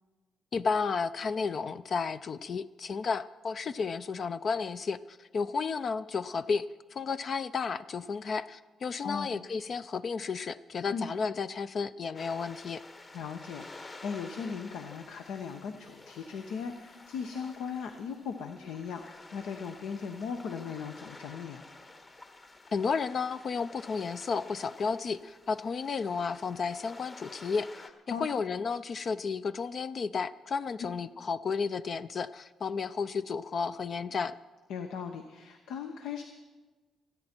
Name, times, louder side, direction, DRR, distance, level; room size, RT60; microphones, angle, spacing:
voice 1, 0.5-12.8 22.7-34.3, left 5 dB, 50° left, 13 dB, 0.4 m, -32 dB
sound 1, 12.1-27.9, left 2 dB, 35° left, 1.4 m, -51 dB
voice 2, 13.1-21.6 28.1-28.2 34.7-36.2, left 6 dB, 85° left, 6 dB, 0.9 m, -38 dB
27.5 x 9.7 x 4.5 m, 1.3 s
cardioid pair, 90°, 0 cm